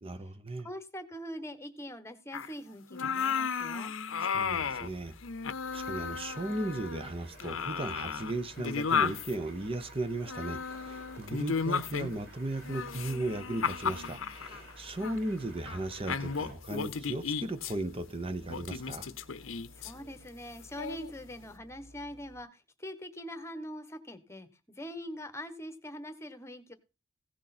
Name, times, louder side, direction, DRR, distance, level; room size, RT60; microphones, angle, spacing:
voice 1, 0.0-0.7 4.2-5.1 5.7-19.1, right 2 dB, 30° right, 0.8 m, -36 dB
voice 2, 0.6-3.9 19.7-24.5 24.8-26.7, equal, 15° left, 1.2 m, -43 dB
sound 1, 2.3-2.5 2.9-4.9 5.2-7.1 7.4-9.3 10.3-12.2 12.6-14.6 15.0-15.2 15.7-15.8 16.1-17.7 18.5-19.9 20.8-21.1, left 6 dB, 85° left, 0.7 m, -34 dB
sound 2, 4.4-22.4, left 1 dB, 70° right, 3.8 m, -56 dB
sound 3, 5.6-16.5, right 1 dB, 90° right, 6.5 m, -54 dB
16.5 x 6.3 x 4.2 m
head